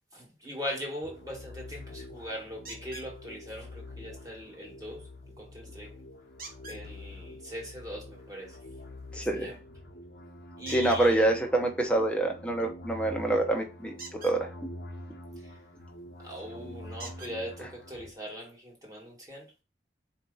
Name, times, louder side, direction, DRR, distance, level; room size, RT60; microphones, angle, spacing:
voice 1, 0.1-5.1 5.4-5.9 6.7-8.6 9.1-9.6 10.6-11.2 15.4-15.5 16.2-19.5, equal, 20° right, 1.5 m, -40 dB
sound 1, 1.0-18.1, left 1 dB, 65° left, 1.0 m, -46 dB
sound 2, 2.6-3.1 6.4-6.8 10.6-11.0 13.9-14.4 16.0-16.1 17.0-17.3 18.3-18.4 18.9-19.0, right 3 dB, 55° right, 1.0 m, -44 dB
voice 2, 9.1-9.5 10.7-13.9 14.2-14.5, right 2 dB, 5° left, 0.8 m, -26 dB
4.3 x 2.8 x 3.8 m
head